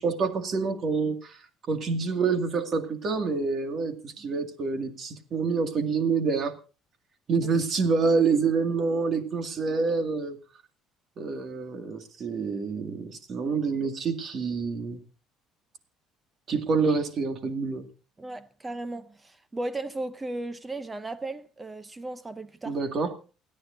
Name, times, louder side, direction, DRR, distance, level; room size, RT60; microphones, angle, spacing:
voice 1, 0.0-1.4 1.7-6.6 7.3-10.4 11.2-15.0 16.5-17.9 22.7-23.1, right 4 dB, 45° right, 2.1 m, -27 dB
voice 2, 18.2-22.8, right 2 dB, 15° right, 0.7 m, -36 dB
28.5 x 9.7 x 2.6 m
cardioid pair, 120°, 0 cm